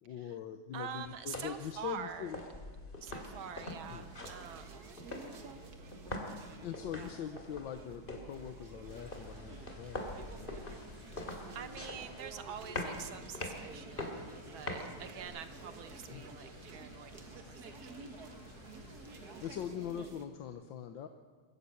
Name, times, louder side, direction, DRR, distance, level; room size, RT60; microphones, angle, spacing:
voice 1, 0.0-2.4 3.9-4.2 6.6-10.0 10.3-10.6 16.1-16.3 18.5-21.1, left 9 dB, 70° left, 8 dB, 1.6 m, -43 dB
voice 2, 0.7-2.3 3.0-4.9 7.0-7.1 10.7-10.9 11.5-14.2 14.5-18.2, right 8 dB, 80° right, 10 dB, 1.9 m, -46 dB
sound 1, 1.0-15.2, left 2 dB, 25° left, 2.7 m, -45 dB
sound 2, 3.1-20.2, right 3 dB, 50° right, 2.0 m, -51 dB
sound 3, 8.9-19.8, left 3 dB, 50° left, 5.9 m, -56 dB
23.0 x 14.5 x 8.5 m, 1.5 s
omnidirectional pair, 2.2 m